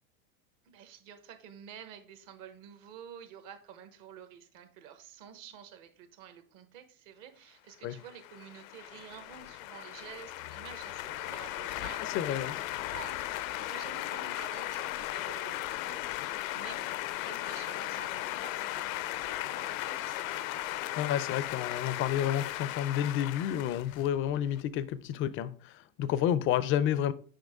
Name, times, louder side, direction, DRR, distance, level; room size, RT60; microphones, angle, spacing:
voice 1, 0.6-20.5, right 8 dB, 50° right, 1.1 m, -50 dB
sound 1, 7.9-24.6, left 15 dB, 75° left, 0.6 m, -37 dB
voice 2, 12.1-12.5 21.0-27.1, left 10 dB, 30° left, 0.4 m, -30 dB
6.4 x 4.8 x 3.5 m
supercardioid pair, 125°, 41 cm